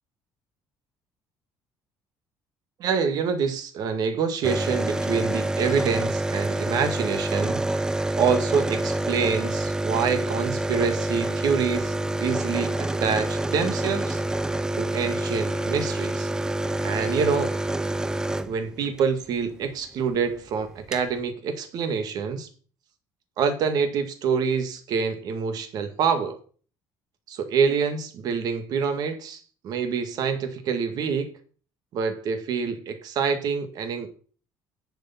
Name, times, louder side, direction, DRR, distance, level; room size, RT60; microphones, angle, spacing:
voice 1, 2.8-7.6 8.2-14.2 14.7-16.3 16.8-17.6 18.5-22.5 23.4-26.4 27.3-31.3 31.9-34.1, right 6 dB, 50° right, 8 dB, 2.0 m, -26 dB
sound 1, 4.4-19.1 20.4-20.5 20.6-21.1, right 1 dB, 10° right, 0.5 m, -27 dB
11.0 x 7.1 x 5.9 m, 0.41 s
cardioid pair, 160°, 8 cm